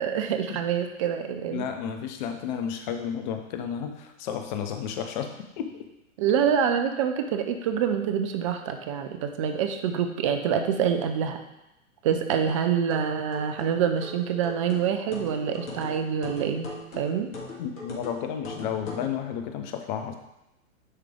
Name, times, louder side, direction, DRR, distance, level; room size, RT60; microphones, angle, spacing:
voice 1, 0.0-1.6 6.2-11.4 12.0-16.7 16.9-17.3, right 8 dB, 25° right, 6 dB, 0.4 m, -26 dB
voice 2, 1.5-5.7 17.6-20.1, left 8 dB, 35° left, 6 dB, 0.7 m, -32 dB
sound 1, 12.5-19.1, left 3 dB, 65° left, 1.9 m, -40 dB
9.7 x 3.3 x 3.6 m, 0.92 s
figure-of-eight pair, 110°, 42 cm